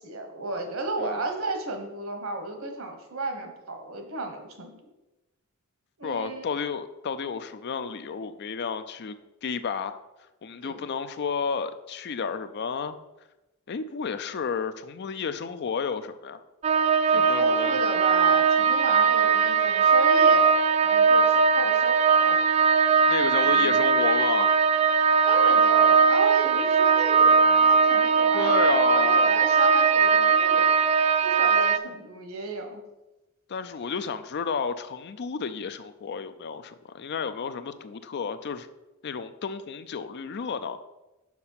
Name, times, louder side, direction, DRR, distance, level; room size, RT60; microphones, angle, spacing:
voice 1, 0.0-4.7 6.0-6.5 10.6-10.9 17.1-20.5 20.8-22.4 23.4-23.7 25.2-30.8 31.2-32.8, right 2 dB, 65° right, 4 dB, 1.3 m, -33 dB
voice 2, 6.0-9.2 9.4-10.0 10.4-13.0 13.7-16.4 17.1-17.8 23.1-24.5 28.3-29.3 33.5-38.7 39.0-40.8, left 6 dB, 50° left, 11 dB, 0.4 m, -31 dB
sound 1, 16.6-31.8, right 5 dB, 30° right, 0.3 m, -20 dB
6.0 x 5.4 x 5.7 m, 1.0 s
head